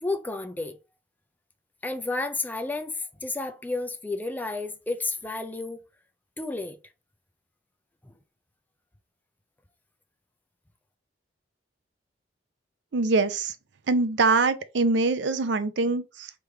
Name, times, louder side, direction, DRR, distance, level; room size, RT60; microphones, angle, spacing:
voice 1, 0.0-0.8 1.8-5.8 6.4-6.8 8.0-8.1, left 2 dB, 10° left, 0.4 m, -31 dB
voice 2, 12.9-13.6 13.9-16.3, right 3 dB, 65° right, 0.5 m, -24 dB
3.4 x 3.2 x 4.8 m
head